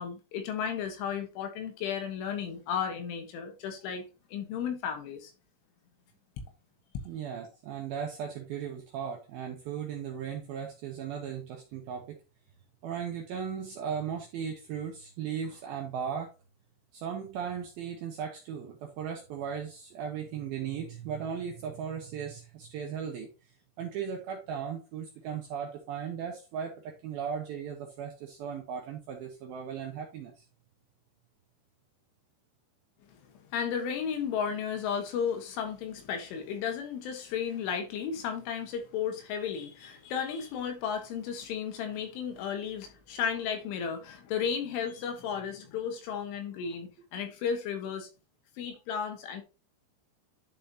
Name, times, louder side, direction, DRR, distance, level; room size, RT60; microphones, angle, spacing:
voice 1, 0.0-4.0 4.3-5.3 33.4-48.1 48.6-49.4, left 7 dB, 75° left, 3.7 m, -34 dB
voice 2, 7.1-12.2 12.8-16.3 16.9-23.3 23.8-30.4, right 7 dB, 90° right, 2.1 m, -37 dB
10.5 x 5.1 x 2.8 m
omnidirectional pair, 5.8 m